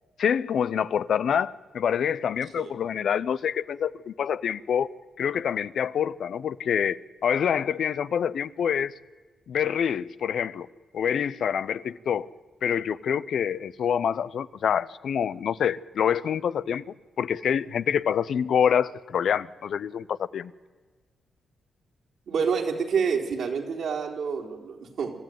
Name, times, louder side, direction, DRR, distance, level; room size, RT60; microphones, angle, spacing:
voice 1, 0.2-4.9 5.2-8.9 9.5-10.7 10.9-12.3 12.6-16.8 17.2-20.5, left 8 dB, 70° left, 0.6 m, -26 dB
voice 2, 22.3-25.1, right 6 dB, 75° right, 3.7 m, -28 dB
26.0 x 14.0 x 9.3 m
cardioid pair, 75°, 0 cm